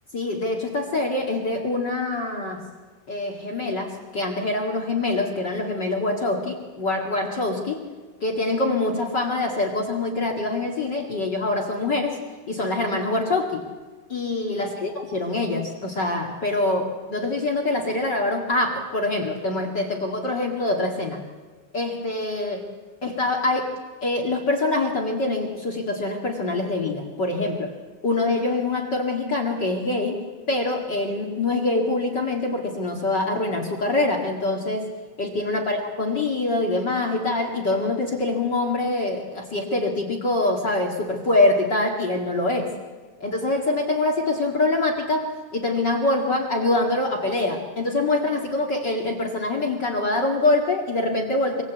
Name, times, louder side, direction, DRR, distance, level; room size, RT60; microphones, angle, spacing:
voice 1, 0.1-2.6 3.1-7.8 8.2-12.2 12.5-13.6 14.1-21.2 21.7-22.7 23.0-23.7 24.0-27.7 28.0-34.9 35.2-42.7 43.2-51.6, left 2 dB, 55° left, 2 dB, 1.2 m, -24 dB
25.5 x 23.5 x 8.3 m, 1.4 s
omnidirectional pair, 5.6 m